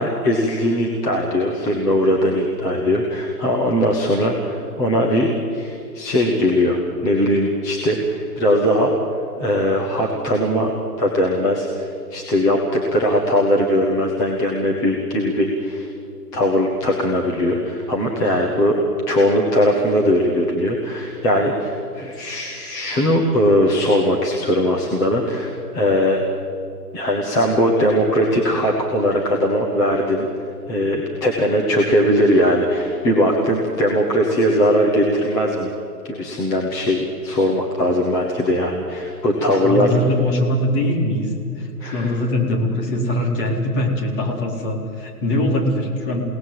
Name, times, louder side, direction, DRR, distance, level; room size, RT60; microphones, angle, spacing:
voice 1, 0.0-8.9 9.4-10.7 11.0-15.9 16.3-26.2 26.9-30.3 30.7-35.7 36.0-39.9 41.8-42.1, equal, 5° left, -2 dB, 0.8 m, -20 dB
voice 2, 39.4-46.2, left 1 dB, 30° left, 0 dB, 4.3 m, -22 dB
29.0 x 18.0 x 7.8 m, 2.5 s
hypercardioid pair, 150°, 50 cm